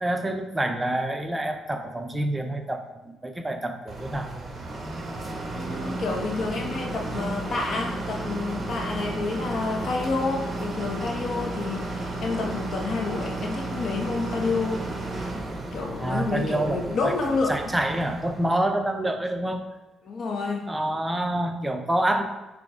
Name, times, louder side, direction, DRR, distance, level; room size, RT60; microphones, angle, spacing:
voice 1, 0.0-4.3 16.0-17.1 17.5-19.6 20.7-22.2, right 1 dB, 15° right, 5 dB, 0.7 m, -27 dB
sound 1, 3.9-18.5, right 2 dB, 30° right, 1.3 m, -33 dB
voice 2, 5.5-14.8 15.7-17.6 20.0-20.7, left 3 dB, 60° left, 1 dB, 1.2 m, -29 dB
6.0 x 3.4 x 5.0 m, 1.0 s
cardioid pair, 90°, 0 cm